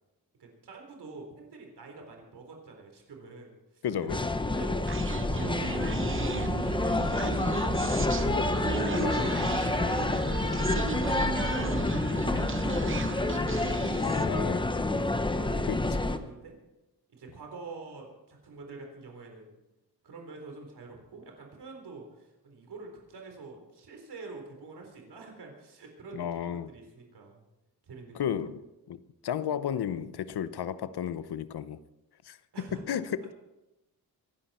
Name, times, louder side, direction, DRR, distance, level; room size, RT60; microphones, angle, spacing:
voice 1, 0.4-4.8 5.1-6.6 7.0-8.7 9.2-10.9 11.4-14.1 15.3-16.6 17.1-19.6 20.0-27.4 27.8-28.3 32.5-33.0, right 3 dB, 85° right, 2 dB, 4.0 m, -47 dB
voice 2, 3.8-4.3 9.0-9.3 14.0-14.7 15.7-15.8 26.1-26.7 28.1-28.6 28.9-31.8 32.2-32.4 32.7-33.3, left 9 dB, 80° left, 14 dB, 0.8 m, -33 dB
sound 1, 4.1-16.2, left 2 dB, 15° left, 0.8 m, -28 dB
Human voice, 4.9-14.4, right 5 dB, 30° right, 0.9 m, -35 dB
24.5 x 11.5 x 4.4 m, 0.99 s
wide cardioid pair, 165°, 38 cm